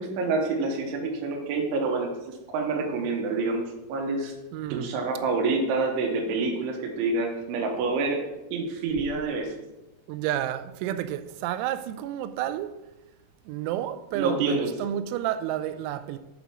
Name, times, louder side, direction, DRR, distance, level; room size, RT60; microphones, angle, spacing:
voice 1, 0.0-4.3 4.7-8.2 8.5-9.5 14.1-14.7, right 3 dB, 75° right, 3.4 m, -27 dB
voice 2, 4.5-4.9 10.1-12.8 13.5-16.2, right 11 dB, 90° right, 3.3 m, -30 dB
8.1 x 5.0 x 6.0 m
omnidirectional pair, 6.0 m